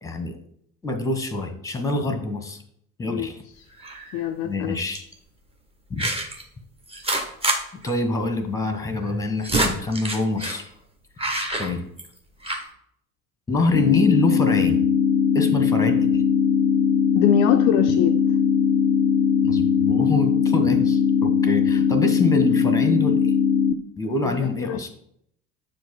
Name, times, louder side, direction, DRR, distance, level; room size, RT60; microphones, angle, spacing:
voice 1, 0.0-0.4 0.8-2.6 3.0-3.4 4.4-5.1 5.9-6.1 7.8-10.6 11.6-11.8 13.5-14.8 15.3-16.2 19.4-23.3 24.0-24.9, left 2 dB, 5° left, 1.1 m, -25 dB
sound 1, 3.8-4.2 4.9-5.1 6.0-6.4 6.9-7.6 7.9-8.0 8.2-8.3 9.1-10.6 11.2-12.2 12.4-12.7, right 1 dB, 15° right, 1.1 m, -26 dB
voice 2, 4.1-4.8 17.1-18.2 24.2-24.9, left 9 dB, 40° left, 0.5 m, -24 dB
sound 2, 13.7-23.7, left 7 dB, 85° left, 0.5 m, -20 dB
7.8 x 4.7 x 4.3 m
figure-of-eight pair, 65°, 45 cm